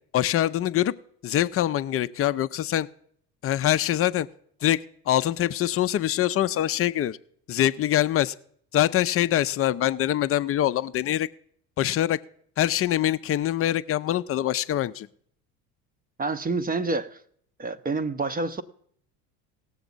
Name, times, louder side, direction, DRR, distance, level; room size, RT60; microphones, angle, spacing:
voice 1, 0.1-1.0 1.2-2.9 3.4-4.3 4.6-7.2 7.5-8.3 8.7-11.3 11.8-12.2 12.6-15.1, left 12 dB, 30° left, 14 dB, 0.5 m, -24 dB
voice 2, 16.2-17.2 17.6-18.6, right 3 dB, 20° right, 13 dB, 0.6 m, -28 dB
18.5 x 7.2 x 3.9 m, 0.63 s
hypercardioid pair, 70°, 47 cm